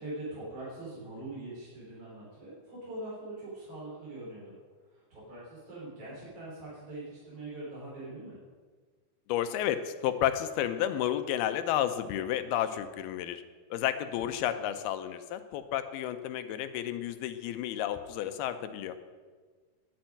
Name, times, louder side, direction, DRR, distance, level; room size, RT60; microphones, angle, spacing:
voice 1, 0.0-4.6 4.8-8.4 14.1-14.7, right 2 dB, 35° right, -8 dB, 5.8 m, -43 dB
voice 2, 9.3-13.4 13.7-19.0, left 11 dB, 80° left, 10 dB, 2.4 m, -31 dB
10.5 x 8.9 x 9.3 m, 1.5 s
omnidirectional pair, 4.9 m